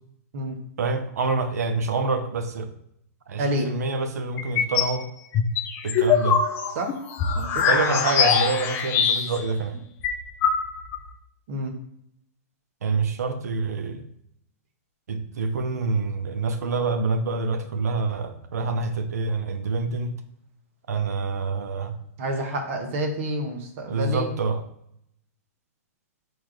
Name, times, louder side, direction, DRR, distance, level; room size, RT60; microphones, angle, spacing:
voice 1, 0.8-2.7 3.3-5.1 5.8-6.4 7.6-9.8 12.8-14.1 15.1-20.1 20.9-22.0 23.9-24.6, right 3 dB, 85° right, 8 dB, 0.6 m, -26 dB
voice 2, 3.4-3.7 6.8-6.9 7.3-7.6 11.5-11.7 22.2-24.3, right 1 dB, 55° right, 4 dB, 0.9 m, -28 dB
sound 1, 4.4-5.0 5.3-9.5 9.8-9.9 10.0-11.0, left 6 dB, 30° left, 0.5 m, -22 dB
4.6 x 2.4 x 4.7 m, 0.72 s
hypercardioid pair, 140°, 8 cm